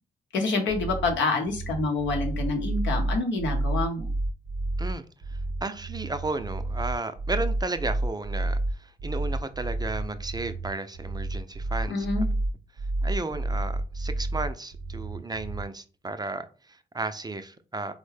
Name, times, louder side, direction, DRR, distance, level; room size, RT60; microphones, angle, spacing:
voice 1, 0.3-4.1 11.9-12.2, left 3 dB, 80° left, 2 dB, 0.8 m, -27 dB
sound 1, 0.7-15.7, right 2 dB, 65° right, 0.8 m, -30 dB
voice 2, 4.8-12.1 12.8-17.9, right 3 dB, 20° right, 10 dB, 0.4 m, -34 dB
3.6 x 2.1 x 3.3 m, 0.36 s
supercardioid pair, 45°, 19 cm